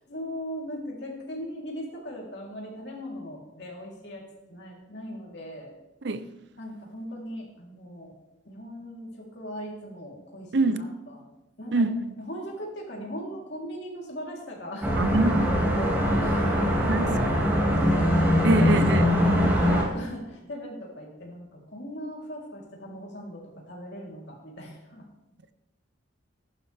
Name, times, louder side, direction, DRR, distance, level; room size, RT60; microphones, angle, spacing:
voice 1, 0.0-5.7 6.6-8.1 8.4-11.2 11.6-11.9 12.2-14.9 16.2-19.1 19.4-25.1, equal, 60° left, 3.8 m, -39 dB
voice 2, 10.5-10.8 11.7-12.1 15.0-15.5 16.9-17.1 18.4-19.1, right 2 dB, 60° right, 0.7 m, -25 dB
sound 1, 14.8-19.8, equal, 10° right, 2.7 m, -22 dB
14.5 x 11.5 x 3.6 m
head